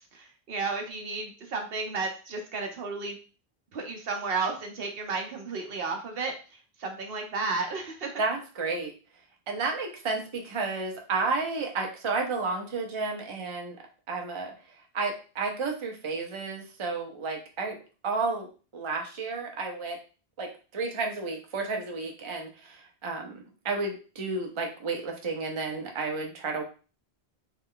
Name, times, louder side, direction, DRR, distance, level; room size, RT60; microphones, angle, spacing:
voice 1, 0.1-3.2 3.7-8.1, right 4 dB, 65° right, 3 dB, 0.9 m, -33 dB
voice 2, 8.2-8.9 9.5-13.8 14.1-14.5 14.9-17.8 18.0-18.5 18.7-20.0 20.4-23.3 23.6-26.6, right 4 dB, 35° right, 2 dB, 0.6 m, -31 dB
3.2 x 2.3 x 3.7 m, 0.35 s
omnidirectional pair, 1.1 m